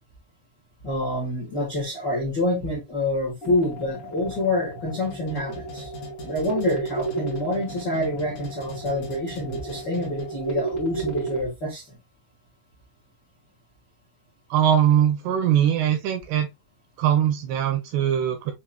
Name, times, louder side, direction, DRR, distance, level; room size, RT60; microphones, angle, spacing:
voice 1, 0.8-5.9 6.2-12.0, left 1 dB, 85° left, 0.9 m, -27 dB
sound 1, 3.4-11.4, right 4 dB, 40° left, 0.8 m, -34 dB
sound 2, 5.0-10.5, left 1 dB, 65° left, 2.1 m, -42 dB
voice 2, 14.5-16.5 17.0-18.5, right 10 dB, 80° right, 2.4 m, -21 dB
7.1 x 2.9 x 2.2 m
omnidirectional pair, 5.2 m